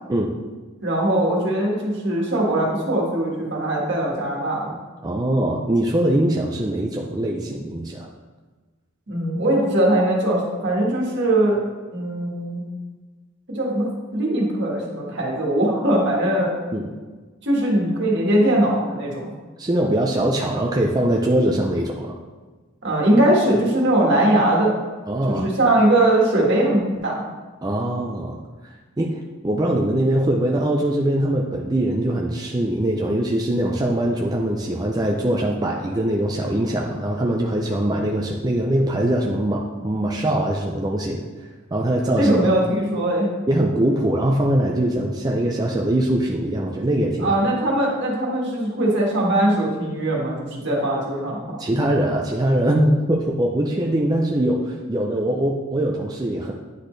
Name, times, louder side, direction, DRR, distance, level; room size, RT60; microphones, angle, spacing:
voice 1, 0.8-4.8 9.1-11.6 11.9-12.6 13.5-16.5 17.4-19.3 22.8-24.7 25.3-27.1 42.2-43.3 47.2-51.4, right 1 dB, 60° right, -3 dB, 1.7 m, -20 dB
voice 2, 5.0-8.1 16.7-16.9 19.6-22.1 25.1-25.5 27.6-28.4 29.0-41.2 41.7-42.3 43.5-47.4 51.6-56.5, right 1 dB, 20° right, -1 dB, 0.4 m, -22 dB
9.8 x 4.2 x 3.2 m, 1.3 s
head